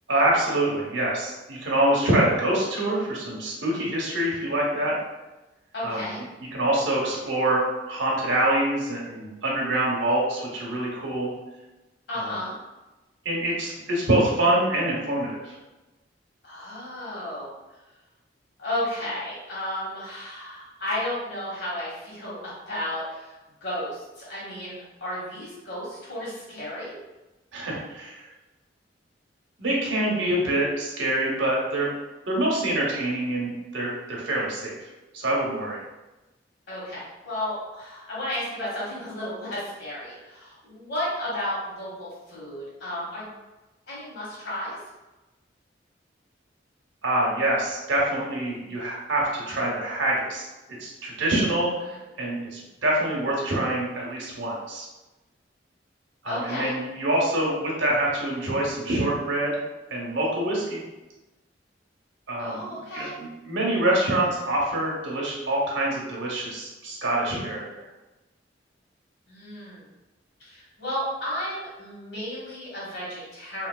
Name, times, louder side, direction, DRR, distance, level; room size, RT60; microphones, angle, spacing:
voice 1, 0.1-5.0 5.8-6.1 6.5-11.3 12.2-12.3 13.2-15.6 27.5-28.3 29.6-31.9 32.3-34.7 35.1-35.8 47.0-50.5 50.8-54.9 56.2-59.6 59.9-60.8 62.3-67.8, right 1 dB, 80° right, -4 dB, 0.9 m, -25 dB
voice 2, 5.7-6.2 12.1-12.5 16.4-17.5 18.6-27.0 36.7-43.3 43.9-44.8 51.8-52.0 56.2-56.7 62.4-63.1 69.3-69.8 70.4-73.7, left 1 dB, 70° left, -8 dB, 1.4 m, -33 dB
3.2 x 2.8 x 2.3 m, 1.1 s
head